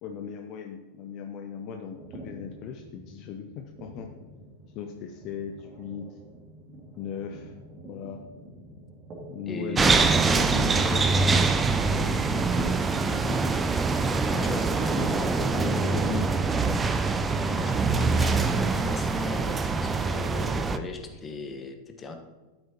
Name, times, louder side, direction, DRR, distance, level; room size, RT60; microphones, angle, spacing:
voice 1, 0.0-4.1 4.7-6.2 7.0-7.6 7.8-8.2 9.3-10.0 10.3-13.6 14.7-16.8, left 7 dB, 40° left, 5 dB, 0.7 m, -38 dB
sound 1, 1.9-11.6, right 1 dB, 35° right, 2.2 m, -47 dB
voice 2, 9.5-10.2 14.2-15.7 17.4-22.2, left 3 dB, 20° left, 5 dB, 1.2 m, -38 dB
sound 2, 9.8-20.8, right 4 dB, 15° right, 0.5 m, -24 dB
12.5 x 8.8 x 2.9 m, 1.3 s
figure-of-eight pair, 90°, 0 cm